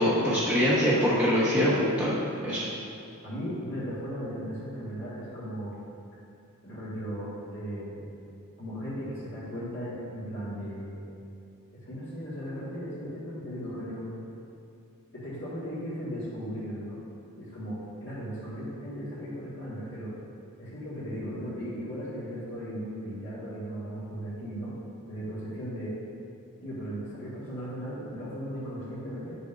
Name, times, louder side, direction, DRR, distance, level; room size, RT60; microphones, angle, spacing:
voice 1, 0.0-2.7, equal, 5° right, -10 dB, 1.0 m, -24 dB
voice 2, 3.2-5.8 6.6-8.1 8.6-11.0 11.9-14.0 15.1-17.0 17.4-20.1 20.6-24.7 25.1-25.9 26.6-29.3, equal, 55° left, -13 dB, 1.8 m, -37 dB
9.2 x 6.7 x 2.6 m, 2.5 s
head